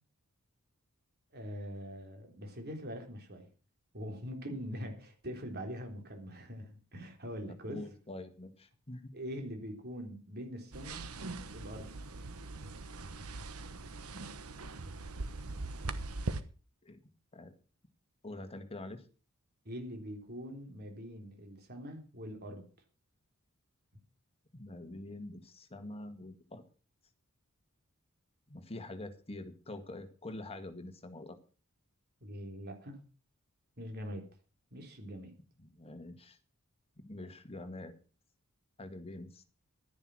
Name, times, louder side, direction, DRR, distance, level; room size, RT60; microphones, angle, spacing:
voice 1, 1.3-3.5 3.9-7.9 9.1-11.1 11.5-11.9 19.7-22.7 32.2-33.0 33.8-34.3 34.7-35.4, equal, 45° right, 4 dB, 3.7 m, -43 dB
voice 2, 7.5-9.1 16.8-17.0 17.3-17.5 18.2-19.0 24.5-26.6 28.5-31.4 35.6-36.4 37.0-37.9 38.8-39.4, left 2 dB, 25° left, 7 dB, 1.8 m, -45 dB
sound 1, 10.7-16.4, right 3 dB, 80° right, 1.2 m, -41 dB
12.0 x 10.5 x 6.2 m, 0.36 s
head